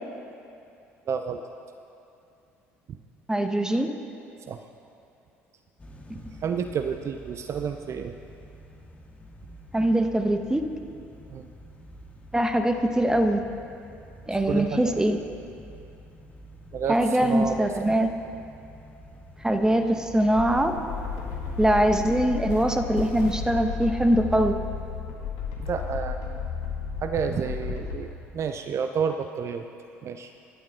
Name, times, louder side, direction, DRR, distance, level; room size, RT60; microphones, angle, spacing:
voice 1, 1.1-1.4 2.9-3.0 4.4-4.6 6.4-8.1 11.3-11.5 14.5-15.1 16.7-18.0 21.5-21.6 25.6-26.4 27.0-29.6 30.0-30.3, right 6 dB, 40° right, 7 dB, 0.7 m, -30 dB
voice 2, 3.3-4.0 9.7-10.7 12.3-13.4 14.3-15.2 16.9-18.1 19.4-20.7 21.6-24.6, right 1 dB, 10° right, 6 dB, 1.3 m, -22 dB
sound 1, 5.8-25.0, right 1 dB, 20° left, 2.1 m, -47 dB
sound 2, 20.3-28.0, left 6 dB, 65° left, 2.4 m, -33 dB
25.5 x 12.0 x 3.9 m, 2.6 s
figure-of-eight pair, 60°, 7 cm